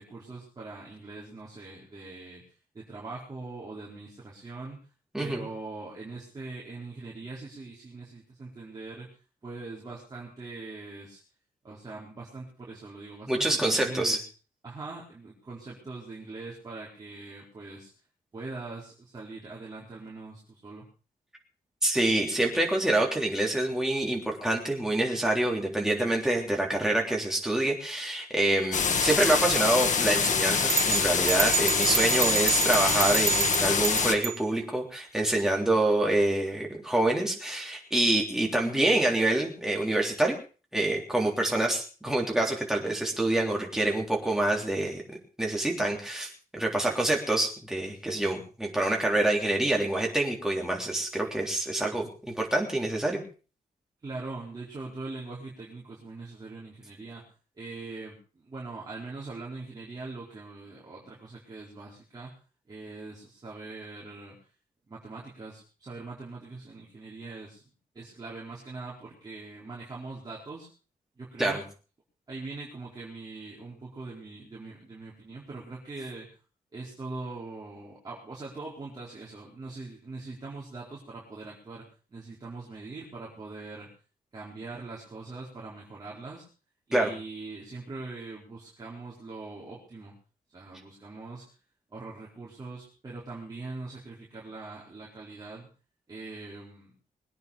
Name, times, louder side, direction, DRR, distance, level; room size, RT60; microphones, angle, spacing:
voice 1, 0.0-4.8 5.2-9.1 9.4-11.2 11.6-14.3 14.6-17.9 18.3-20.8 54.0-57.3 57.6-62.3 62.7-64.4 64.9-67.6 67.9-70.7 71.2-71.6 72.3-76.3 76.7-83.9 84.3-86.4 86.9-90.1 90.5-91.4 91.9-95.7 96.1-96.9, right 3 dB, 25° right, -6 dB, 4.5 m, -42 dB
voice 2, 5.1-5.5 13.3-14.2 21.8-40.3 40.7-53.2 71.4-71.6 86.9-87.1, right 1 dB, 5° right, -1 dB, 3.5 m, -26 dB
sound 1, 28.7-34.1, left 6 dB, 55° left, 1.5 m, -25 dB
sound 2, 30.7-34.4, right 11 dB, 75° right, 0.7 m, -29 dB
22.5 x 9.4 x 5.1 m, 0.38 s
wide cardioid pair, 175°, 15 cm